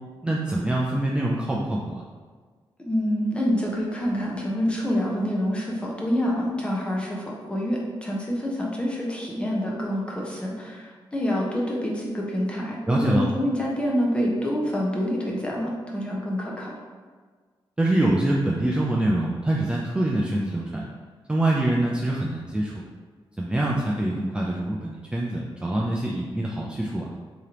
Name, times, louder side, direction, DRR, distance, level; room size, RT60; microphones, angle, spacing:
voice 1, 0.2-2.0 12.9-13.3 17.8-20.8 21.3-22.8 23.4-27.1, right 1 dB, 10° right, -3 dB, 0.3 m, -25 dB
voice 2, 2.8-16.7, equal, 10° left, -3 dB, 0.7 m, -27 dB
3.2 x 2.9 x 3.7 m, 1.5 s
wide cardioid pair, 130°, 9 cm